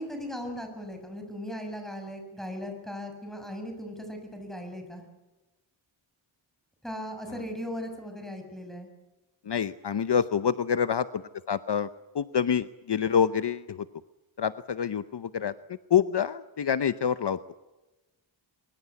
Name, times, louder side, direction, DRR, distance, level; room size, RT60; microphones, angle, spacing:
voice 1, 0.0-5.0 6.8-8.9, equal, ahead, 4 dB, 6.7 m, -38 dB
voice 2, 9.5-11.2 11.5-11.9 12.1-13.8 14.4-15.5 15.9-17.4, left 8 dB, 60° left, 13 dB, 0.8 m, -26 dB
23.5 x 22.5 x 8.3 m, 1.1 s
wide cardioid pair, 110°, 47 cm